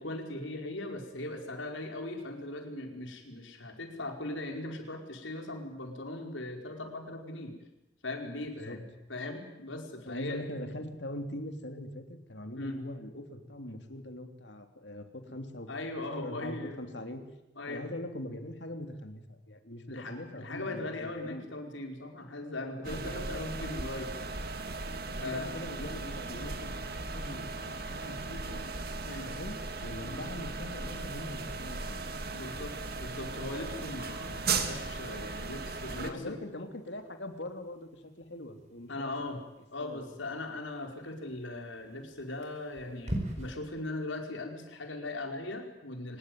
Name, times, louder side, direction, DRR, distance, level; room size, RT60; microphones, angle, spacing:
voice 1, 0.0-7.5 8.0-10.5 12.6-12.8 15.7-16.9 17.6-17.8 19.9-24.1 25.2-25.5 29.0-29.3 30.0-30.2 32.3-36.4 38.9-39.4 39.7-46.2, left 2 dB, 90° left, 4 dB, 4.9 m, -39 dB
voice 2, 10.1-15.7 16.1-17.2 17.7-21.4 22.8-23.3 25.1-26.9 27.1-28.6 29.3-32.0 36.0-39.1 39.8-40.1, left 1 dB, 65° left, 6 dB, 3.3 m, -42 dB
sound 1, 22.8-36.1, right 4 dB, 55° right, 2.2 m, -37 dB
sound 2, 36.1-43.5, equal, 40° right, 4.9 m, -44 dB
24.5 x 20.5 x 9.4 m, 0.89 s
head